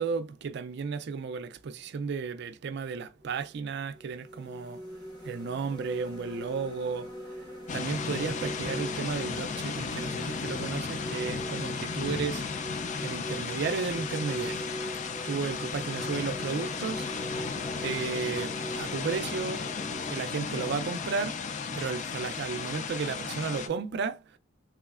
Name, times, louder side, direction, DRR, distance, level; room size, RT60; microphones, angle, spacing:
voice 1, 0.0-4.8 5.2-7.1 7.7-12.5 13.0-14.7 15.2-17.1 17.8-19.6 20.1-21.4 21.7-24.2, right 5 dB, 60° right, 0.4 m, -33 dB
sound 1, 3.2-3.4 3.9-20.1, equal, 25° left, 1.3 m, -41 dB
sound 2, 7.7-23.7, left 5 dB, 40° left, 0.3 m, -35 dB
3.5 x 3.1 x 2.3 m
head